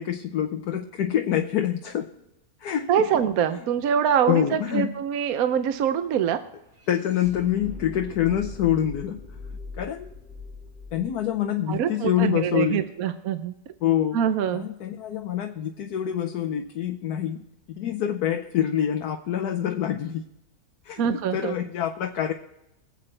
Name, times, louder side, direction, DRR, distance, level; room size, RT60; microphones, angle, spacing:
voice 1, 0.0-2.1 2.6-3.0 4.3-4.9 6.9-9.2 9.8-10.1 10.9-12.8 13.8-14.2 14.5-17.4 17.7-20.2 20.8-21.0 21.3-22.3, left 10 dB, 85° left, 4 dB, 1.3 m, -26 dB
voice 2, 2.9-6.4 11.7-13.5 14.1-14.7 21.0-21.5, right 8 dB, 70° right, 10 dB, 1.1 m, -24 dB
sound 1, 3.8-3.9 4.2-12.4, left 3 dB, 50° right, 3.4 m, -43 dB
24.0 x 8.1 x 3.3 m, 0.87 s
omnidirectional pair, 1.6 m